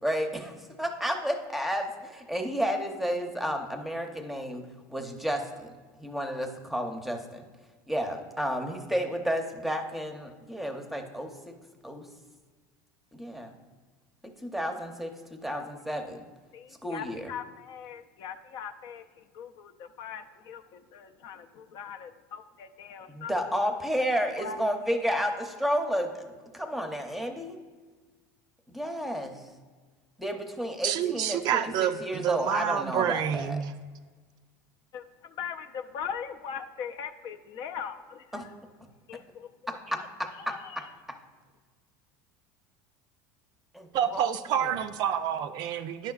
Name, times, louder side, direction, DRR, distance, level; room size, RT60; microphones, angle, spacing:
voice 1, 0.0-4.6 4.9-7.4 7.9-11.5 11.8-12.1 13.1-13.5 14.2-16.2 16.8-17.3 23.1-26.2 26.5-27.6 28.7-29.4 30.2-33.6 38.3-38.4 39.9-40.6 43.7-44.3 44.6-44.7, equal, ahead, 5 dB, 0.7 m, -31 dB
voice 2, 16.5-23.5 24.4-24.6 24.9-25.1 34.9-38.5 39.1-39.8 40.2-40.9, left 7 dB, 55° left, 7 dB, 0.4 m, -41 dB
voice 3, 30.8-33.7 43.9-46.1, right 9 dB, 50° right, 10 dB, 0.3 m, -28 dB
10.0 x 5.6 x 2.4 m, 1.4 s
supercardioid pair, 110°, 9 cm